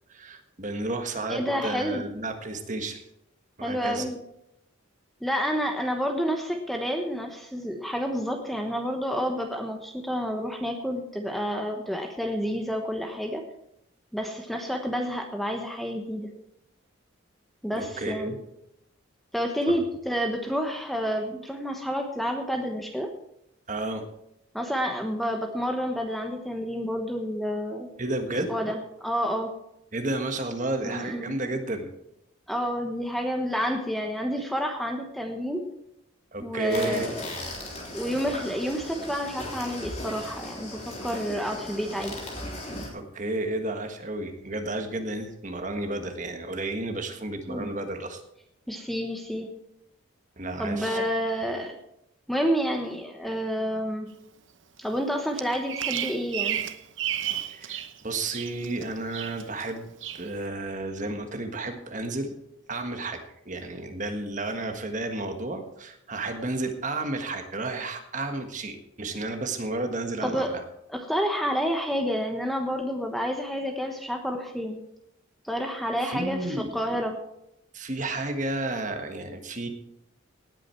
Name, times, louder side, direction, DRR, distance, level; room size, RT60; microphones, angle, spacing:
voice 1, 0.1-3.0 3.6-4.0 17.7-18.4 19.7-19.8 23.7-24.0 28.0-28.5 29.9-31.9 36.3-37.1 42.9-48.2 50.4-51.0 57.5-62.3 62.7-70.6 76.0-77.0 77.7-79.7, right 2 dB, 35° right, 5 dB, 1.6 m, -32 dB
voice 2, 1.3-2.0 3.6-4.2 5.2-13.4 14.1-16.3 17.6-18.3 19.3-23.1 24.5-27.9 28.5-29.5 30.8-31.3 32.5-35.6 36.4-37.2 37.9-42.1 47.5-47.7 48.7-49.5 50.6-51.8 52.3-54.1 54.8-56.6 70.2-70.5 70.9-74.8 75.4-77.1, equal, ahead, 3 dB, 1.1 m, -29 dB
sound 1, 36.7-42.9, left 1 dB, 30° left, 3.5 m, -37 dB
Bird vocalization bird call bird song, 55.4-57.9 58.2-58.8 59.1-59.7 60.0-60.3, right 11 dB, 65° right, 0.9 m, -32 dB
18.0 x 8.6 x 4.6 m, 0.80 s
head